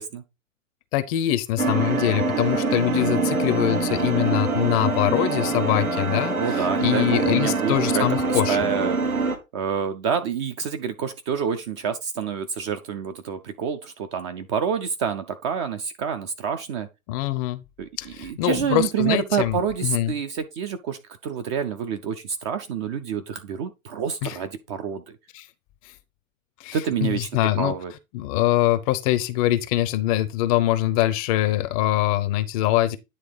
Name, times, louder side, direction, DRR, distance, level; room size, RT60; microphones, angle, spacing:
voice 1, 0.9-8.6 17.1-17.6 18.0-20.1 24.2-24.4 25.3-25.5 26.6-27.7 28.1-33.0, left 14 dB, 25° left, 0.6 m, -23 dB
sound 1, 1.6-9.4, right 3 dB, 90° right, 1.6 m, -24 dB
voice 2, 6.4-9.0 9.5-16.9 17.8-25.2 26.7-27.3 27.6-27.9, right 7 dB, 20° right, 0.4 m, -28 dB
9.8 x 3.3 x 4.8 m
figure-of-eight pair, 115°, 41 cm